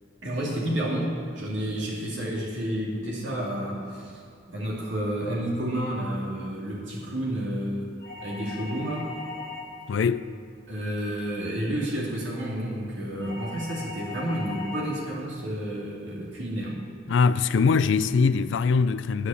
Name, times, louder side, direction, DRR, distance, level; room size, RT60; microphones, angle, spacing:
voice 1, 0.2-4.2 4.5-7.9 8.2-9.1 10.7-16.8, right 1 dB, 75° right, 2.3 m, -30 dB
sound 1, 8.0-9.9 13.2-15.0, left 3 dB, 45° left, 1.4 m, -39 dB
voice 2, 9.9-10.3 17.1-19.3, left 5 dB, 70° left, 0.4 m, -22 dB
9.7 x 8.2 x 6.9 m
head